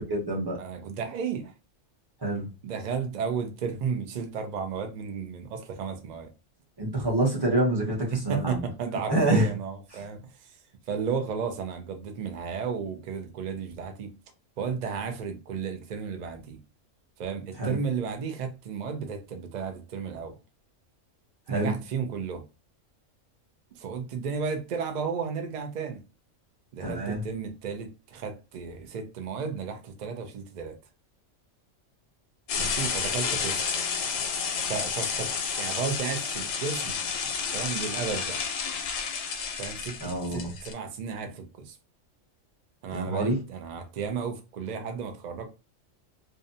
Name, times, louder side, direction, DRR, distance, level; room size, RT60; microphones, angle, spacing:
voice 1, 0.0-0.6 2.2-2.5 6.8-8.6 9.1-9.5 17.6-17.8 21.5-21.7 26.8-27.2 40.0-40.5 42.9-43.4, right 1 dB, 25° right, 0.7 m, -26 dB
voice 2, 0.6-1.5 2.6-6.3 8.1-10.6 10.9-14.1 14.6-16.6 17.2-20.4 21.5-22.4 23.8-26.0 26.7-30.8 32.6-33.6 34.7-35.3 35.6-37.0 37.5-38.4 39.6-41.8 42.8-45.5, right 6 dB, 70° right, 0.4 m, -33 dB
sound 1, 32.5-40.7, left 6 dB, 85° left, 1.0 m, -31 dB
2.6 x 2.1 x 2.6 m
omnidirectional pair, 1.3 m